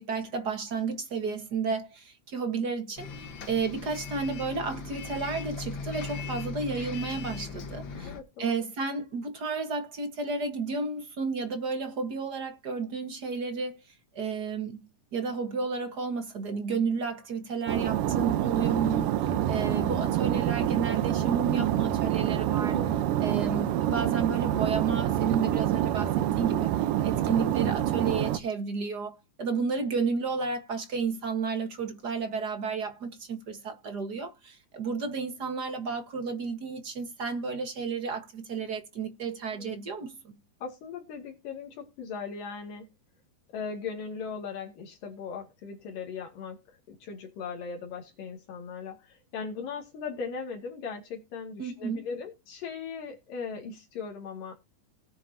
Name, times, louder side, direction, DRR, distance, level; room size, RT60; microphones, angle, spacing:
voice 1, 0.0-8.1 8.4-13.8 14.1-14.8 15.1-19.1 19.5-22.8 23.2-26.7 27.0-40.3 51.6-52.0, right 5 dB, 45° right, 1.4 m, -32 dB
Bus, 3.0-8.2, left 4 dB, 50° left, 1.5 m, -38 dB
voice 2, 8.0-8.6 19.7-20.1 22.6-23.0 39.5-39.8 40.6-42.9 43.5-54.5, left 5 dB, 75° left, 4.0 m, -39 dB
sound 1, 17.7-28.4, right 12 dB, 75° right, 2.4 m, -27 dB
18.5 x 9.5 x 2.8 m
omnidirectional pair, 3.9 m